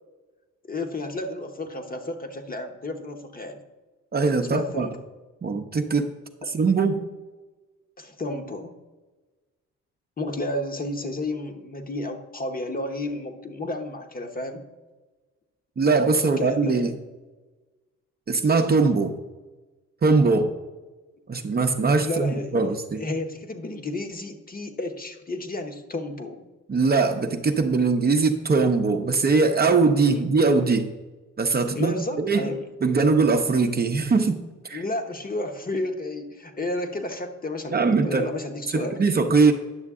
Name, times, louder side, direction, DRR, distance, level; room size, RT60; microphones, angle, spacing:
voice 1, 0.6-3.6 4.5-4.9 8.0-8.7 10.2-14.6 16.4-16.8 22.0-22.6 23.0-26.5 31.7-32.6 34.7-39.0, left 2 dB, 30° left, 5 dB, 1.0 m, -32 dB
voice 2, 4.1-4.9 5.4-6.1 6.5-7.0 15.8-16.9 18.3-19.2 20.0-20.5 21.3-23.0 26.7-30.9 31.4-32.5 32.8-34.8 37.7-38.3 38.7-39.5, right 4 dB, 30° right, 5 dB, 0.7 m, -21 dB
9.8 x 6.5 x 3.6 m, 1.2 s
cardioid pair, 90°, 30 cm